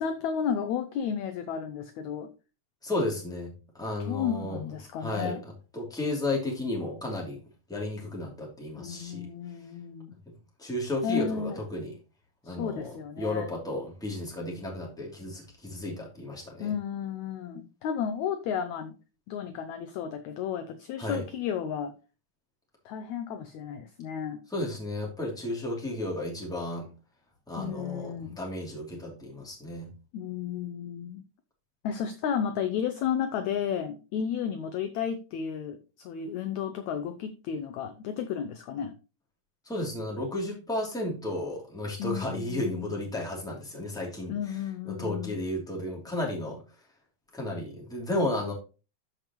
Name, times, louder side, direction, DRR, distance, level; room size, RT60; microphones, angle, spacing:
voice 1, 0.0-2.3 4.0-5.4 8.8-10.2 11.0-11.6 12.4-13.5 16.6-19.0 19.3-21.9 22.8-24.4 27.6-28.4 30.1-31.2 31.8-38.9 42.0-42.9 44.3-45.4, left 8 dB, 80° left, 7 dB, 1.7 m, -33 dB
voice 2, 2.8-4.6 5.0-7.4 7.7-9.3 10.3-10.4 10.6-11.9 12.4-16.7 21.0-21.2 24.5-26.9 27.5-29.9 39.6-44.4 44.9-46.6 47.3-48.5, left 1 dB, ahead, -2 dB, 2.1 m, -33 dB
13.5 x 5.1 x 3.0 m, 0.32 s
omnidirectional pair, 4.1 m